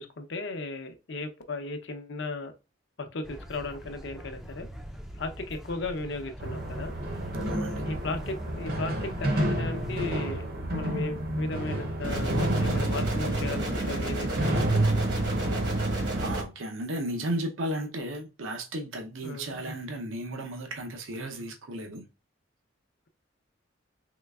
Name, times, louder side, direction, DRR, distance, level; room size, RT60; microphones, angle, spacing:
voice 1, 0.0-2.5 3.0-4.7 5.2-6.9 7.8-10.4 10.7-14.5 19.2-19.5, left 2 dB, 65° left, 0.6 m, -36 dB
sound 1, 3.2-10.1, equal, ahead, 0.3 m, -43 dB
sound 2, 6.4-16.4, right 1 dB, 50° right, 0.7 m, -30 dB
voice 2, 7.5-7.9 16.2-22.0, right 1 dB, 90° right, 0.6 m, -34 dB
sound 3, 12.0-16.4, right 1 dB, 65° right, 1.0 m, -31 dB
3.8 x 3.1 x 2.3 m
head